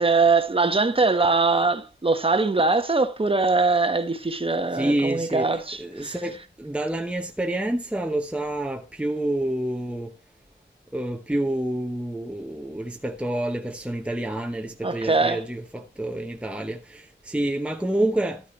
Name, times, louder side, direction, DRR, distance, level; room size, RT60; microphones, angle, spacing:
voice 1, 0.0-6.2 14.8-15.4, right 3 dB, 30° right, 1.3 m, -22 dB
voice 2, 4.7-5.5 5.8-10.1 10.9-18.4, right 1 dB, 5° right, 1.0 m, -28 dB
13.0 x 10.0 x 3.2 m
wide cardioid pair, 100°, 20 cm